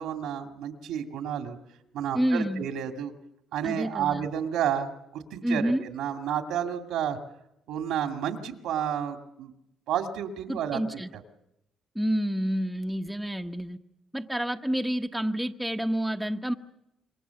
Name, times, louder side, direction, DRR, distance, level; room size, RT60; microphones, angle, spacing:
voice 1, 0.0-1.6 1.9-3.1 3.5-7.2 7.7-9.5 9.9-11.2, right 9 dB, 90° right, 6 dB, 2.3 m, -31 dB
voice 2, 2.1-2.7 3.6-4.2 5.4-5.8 10.5-11.1 11.9-13.8 14.1-16.5, equal, 5° right, 4 dB, 1.2 m, -28 dB
27.5 x 23.0 x 7.1 m, 0.85 s
cardioid pair, 90°, 0 cm